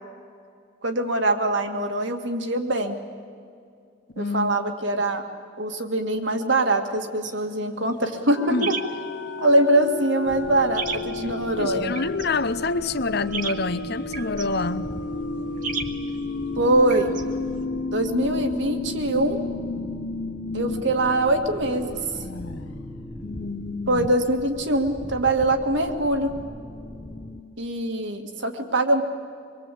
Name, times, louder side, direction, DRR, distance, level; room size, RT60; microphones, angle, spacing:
voice 1, 0.8-3.0 4.2-5.2 5.6-8.8 9.4-11.9 16.6-17.1 17.9-19.4 20.5-22.0 23.9-26.3 27.6-29.0, right 1 dB, 70° right, 2.2 m, -23 dB
voice 2, 4.1-4.6 8.5-8.7 11.6-14.9 23.2-24.2, left 3 dB, 55° left, 0.8 m, -27 dB
sound 1, 7.2-17.6, right 6 dB, 40° right, 1.6 m, -38 dB
sound 2, 8.3-20.8 21.2-21.3 21.6-24.3, left 4 dB, 85° left, 0.7 m, -33 dB
sound 3, 10.3-27.4, equal, 10° left, 0.9 m, -38 dB
25.0 x 22.5 x 8.5 m
head